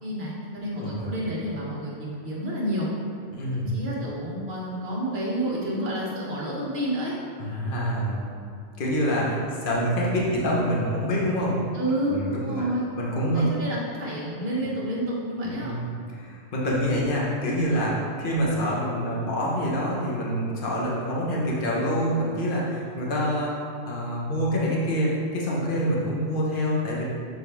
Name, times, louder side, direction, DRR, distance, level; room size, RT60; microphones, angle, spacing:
voice 1, 0.0-2.9 3.5-7.1 11.7-12.9 13.3-15.7, right 1 dB, 50° right, -5 dB, 1.5 m, -29 dB
voice 2, 0.8-1.1 3.3-3.7 7.4-8.2 8.8-11.5 12.1-12.7 13.0-13.4 15.4-15.8 16.1-23.5 23.9-27.0, equal, 45° left, -4 dB, 1.1 m, -26 dB
7.0 x 4.1 x 3.4 m, 2.4 s
omnidirectional pair, 1.4 m